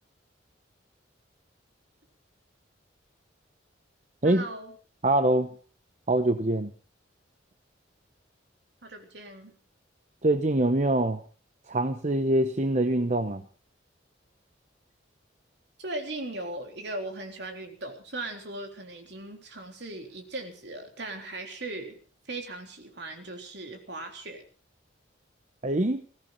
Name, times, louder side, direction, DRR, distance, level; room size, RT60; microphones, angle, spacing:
voice 1, 4.2-4.8 8.8-9.6 15.8-22.0 22.3-24.4, right 2 dB, 60° right, 4 dB, 3.7 m, -38 dB
voice 2, 5.0-5.5 6.1-6.7 10.2-11.2 11.7-13.4 25.6-26.1, right 1 dB, 35° right, 8 dB, 0.9 m, -24 dB
21.0 x 16.5 x 4.1 m, 0.40 s
head